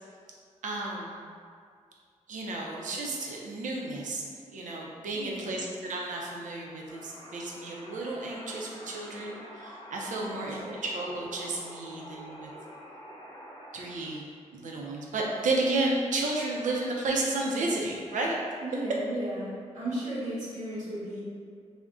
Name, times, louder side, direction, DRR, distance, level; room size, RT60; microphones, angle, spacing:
voice 1, 0.6-1.2 2.3-12.5 13.7-14.2 14.5-18.4, right 2 dB, 80° right, -2 dB, 0.5 m, -32 dB
voice 2, 5.1-5.7 10.2-10.9 18.6-21.2, right 1 dB, 65° right, -10 dB, 0.9 m, -35 dB
sound 1, 6.9-14.1, equal, 35° left, 0.4 m, -47 dB
2.4 x 2.1 x 3.5 m, 2.2 s
wide cardioid pair, 150°, 13 cm